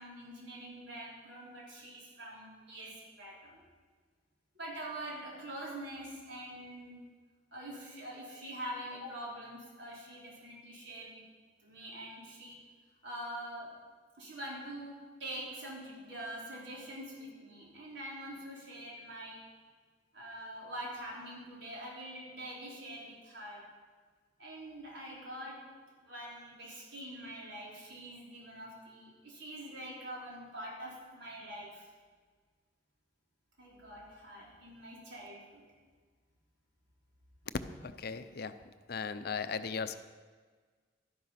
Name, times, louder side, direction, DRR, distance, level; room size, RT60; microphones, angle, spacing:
voice 1, 0.0-3.6 4.5-7.0 7.5-11.2 11.6-12.6 13.0-13.8 14.2-19.5 20.1-23.6 24.4-25.7 26.0-31.9 33.6-35.7, right 1 dB, 85° right, -4 dB, 4.2 m, -45 dB
voice 2, 37.8-38.5 38.9-40.0, left 5 dB, 60° left, 11 dB, 0.7 m, -37 dB
12.0 x 10.5 x 5.9 m, 1.5 s
head